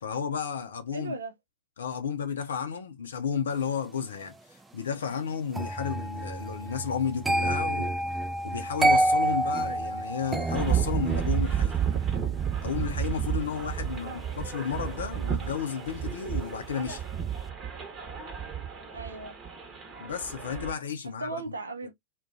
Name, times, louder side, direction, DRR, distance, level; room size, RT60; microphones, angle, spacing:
voice 1, 0.0-1.2 1.8-8.0 8.4-11.8 12.6-17.0 20.0-21.4, left 7 dB, 70° left, 0.5 m, -32 dB
voice 2, 0.9-1.3 14.0-14.3 18.9-19.4 21.0-21.9, right 2 dB, 75° right, 0.5 m, -37 dB
sound 1, 5.5-16.5 16.8-17.2, right 1 dB, 10° right, 0.4 m, -30 dB
sound 2, 10.5-20.7, right 9 dB, 25° right, 0.9 m, -31 dB
2.4 x 2.2 x 2.5 m
figure-of-eight pair, 95°, 0 cm